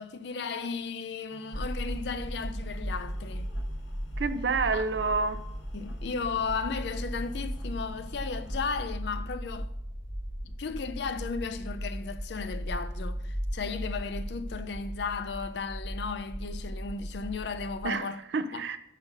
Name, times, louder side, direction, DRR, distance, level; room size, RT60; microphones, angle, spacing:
voice 1, 0.0-3.6 4.7-4.9 5.7-9.7 10.4-18.2 18.5-18.6, left 5 dB, 65° left, 0.4 m, -35 dB
sound 1, 1.3-8.8, left 1 dB, 85° left, 1.2 m, -54 dB
sound 2, 1.5-17.8, equal, 10° left, 0.7 m, -37 dB
voice 2, 4.2-5.4 17.8-18.8, right 4 dB, 70° right, 0.4 m, -29 dB
5.8 x 4.0 x 5.5 m
head